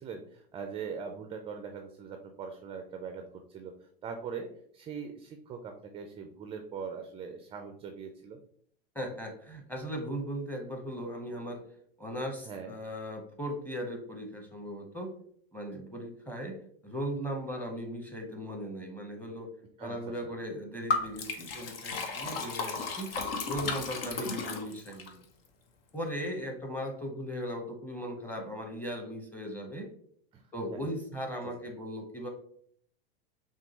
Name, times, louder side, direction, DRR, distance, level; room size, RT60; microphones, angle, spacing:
voice 1, 0.0-3.7 4.0-8.4 12.4-12.7 19.8-20.3 30.3-30.8, right 6 dB, 20° right, 6 dB, 0.4 m, -41 dB
voice 2, 8.9-11.6 12.0-15.2 15.5-19.5 19.8-23.2 23.4-25.2 25.9-29.9 30.5-32.3, equal, 5° left, 2 dB, 0.9 m, -38 dB
Liquid, 20.9-25.1, left 4 dB, 70° left, 0.8 m, -34 dB
5.9 x 2.3 x 3.0 m, 0.63 s
hypercardioid pair, 95°, 31 cm